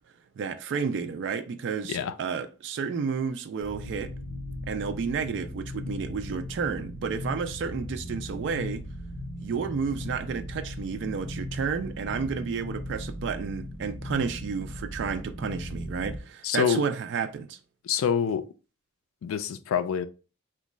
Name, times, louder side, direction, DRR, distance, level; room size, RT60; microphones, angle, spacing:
voice 1, 0.4-4.1 4.7-8.9 9.4-17.6, right 6 dB, 60° right, 0.3 m, -31 dB
sound 1, 3.6-16.2, left 1 dB, 55° left, 0.8 m, -38 dB
voice 2, 16.4-16.8 17.9-18.5 19.2-20.1, left 7 dB, 90° left, 0.3 m, -26 dB
3.0 x 2.2 x 3.7 m
head